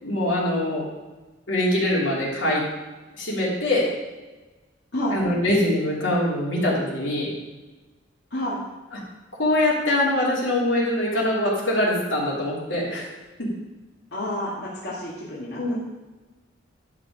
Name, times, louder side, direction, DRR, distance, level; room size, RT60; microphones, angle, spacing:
voice 1, 0.0-0.9 1.5-2.6 3.1-3.9 5.1-7.3 9.4-13.1 15.6-15.8, left 1 dB, 80° left, -5 dB, 3.3 m, -23 dB
voice 2, 8.3-8.6 14.1-15.8, equal, 60° left, -8 dB, 2.3 m, -29 dB
11.5 x 6.3 x 5.0 m, 1.2 s
head